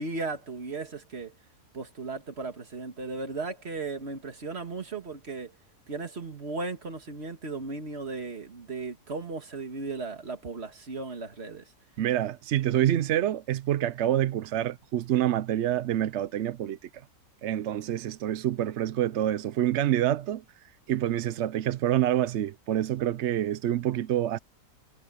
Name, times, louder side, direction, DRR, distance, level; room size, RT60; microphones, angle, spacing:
voice 1, 0.0-1.3 1.7-5.5 5.9-11.6, right 3 dB, 40° right, 2.1 m, -36 dB
voice 2, 12.0-16.8 17.4-20.4 20.9-24.4, right 12 dB, 65° right, 0.7 m, -27 dB
omnidirectional pair, 1.7 m